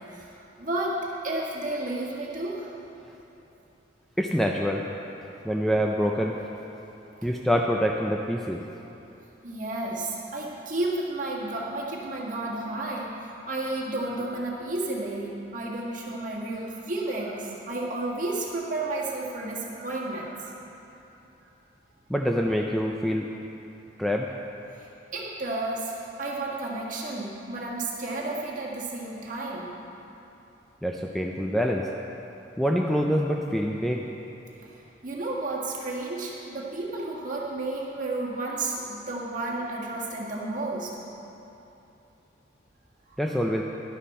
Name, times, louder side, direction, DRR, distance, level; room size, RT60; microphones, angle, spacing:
voice 1, 0.1-2.7 5.3-5.4 9.4-20.5 24.7-29.7 34.6-34.7 35.0-41.0 43.1-43.2, right 2 dB, 45° right, -4 dB, 1.7 m, -32 dB
voice 2, 4.2-4.8 5.4-6.4 7.2-8.6 22.1-23.3 24.0-24.3 30.8-31.9 32.6-34.0 43.2-43.6, equal, ahead, 0 dB, 0.4 m, -25 dB
11.5 x 10.5 x 4.3 m, 3.0 s
head